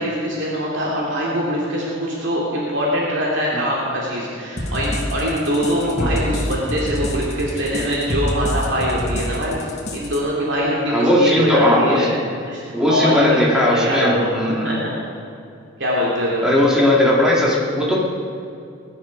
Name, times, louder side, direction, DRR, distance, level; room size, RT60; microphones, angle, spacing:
voice 1, 0.0-12.1 12.4-12.6 12.9-14.3 14.6-14.9 15.8-16.5, equal, 55° right, -5 dB, 2.7 m, -23 dB
sound 1, 4.6-10.2, left 1 dB, 35° left, 1.8 m, -25 dB
voice 2, 10.9-12.1 12.7-14.8 16.4-17.9, left 1 dB, 5° right, -4 dB, 2.4 m, -17 dB
19.0 x 11.0 x 5.3 m, 2.5 s
head